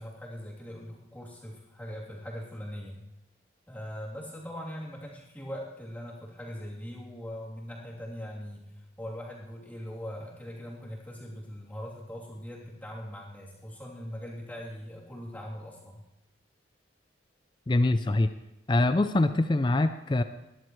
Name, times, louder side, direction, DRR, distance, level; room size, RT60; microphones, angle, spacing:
voice 1, 0.0-3.0 3.7-16.0, equal, 10° left, -5 dB, 3.1 m, -41 dB
voice 2, 17.7-18.3 18.7-20.2, left 2 dB, 25° left, 10 dB, 0.4 m, -24 dB
20.5 x 12.5 x 3.2 m, 0.91 s
head